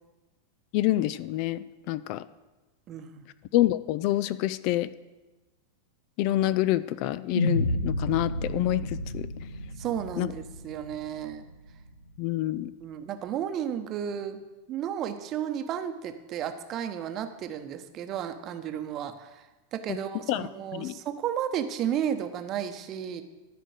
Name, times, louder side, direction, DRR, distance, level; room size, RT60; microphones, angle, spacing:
voice 1, 0.7-2.2 3.5-4.9 6.2-9.3 10.2-10.3 12.2-12.7 20.3-20.5 20.7-21.0, left 15 dB, 45° left, 16 dB, 0.3 m, -27 dB
voice 2, 2.9-3.3 9.8-11.4 12.8-14.4 14.7-19.4 19.7-23.2, right 9 dB, 35° right, 8 dB, 0.9 m, -33 dB
sound 1, 7.3-11.7, left 1 dB, 80° left, 0.7 m, -31 dB
13.0 x 5.1 x 6.4 m, 1.1 s
figure-of-eight pair, 90°, 0 cm